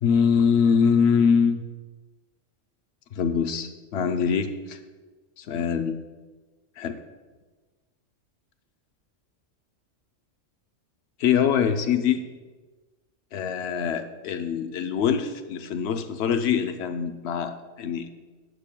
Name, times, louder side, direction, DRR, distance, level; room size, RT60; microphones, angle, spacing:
voice 1, 0.0-1.6 3.1-4.8 5.4-6.0 6.8-7.0 11.2-12.2 13.3-18.1, left 6 dB, 65° left, 8 dB, 0.8 m, -23 dB
11.0 x 8.6 x 2.2 m, 1.3 s
omnidirectional pair, 1.3 m